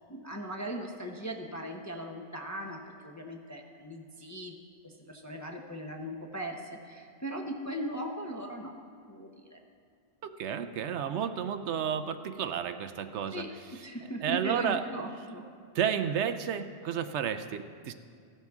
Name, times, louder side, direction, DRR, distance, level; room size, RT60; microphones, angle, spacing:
voice 1, 0.1-4.5 4.8-8.7 9.1-9.6 13.3-15.4, right 1 dB, 20° left, 2 dB, 0.6 m, -39 dB
voice 2, 10.2-13.4 14.2-14.8 15.7-17.9, right 8 dB, 70° right, 10 dB, 0.8 m, -31 dB
15.5 x 12.5 x 3.5 m, 2.3 s
omnidirectional pair, 1.3 m